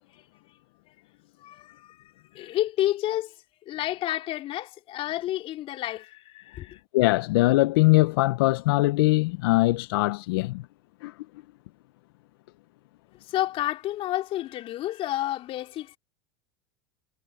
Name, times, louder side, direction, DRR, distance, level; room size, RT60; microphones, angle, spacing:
voice 1, 1.4-3.4 3.7-6.8 13.2-16.0, left 14 dB, 45° left, 3.6 m, -30 dB
voice 2, 6.9-10.6 11.0-11.1, left 20 dB, 70° left, 0.8 m, -21 dB
hypercardioid pair, 100°, 13 cm